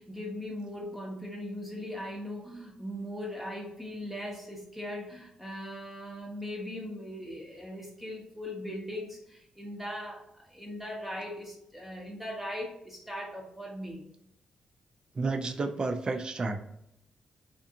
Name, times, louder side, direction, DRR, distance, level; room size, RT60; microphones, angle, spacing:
voice 1, 0.0-14.0, left 1 dB, 5° right, -1 dB, 0.7 m, -39 dB
voice 2, 15.2-16.6, right 3 dB, 35° right, 5 dB, 0.4 m, -31 dB
2.6 x 2.4 x 2.6 m, 0.76 s
cardioid pair, 65°, 2 cm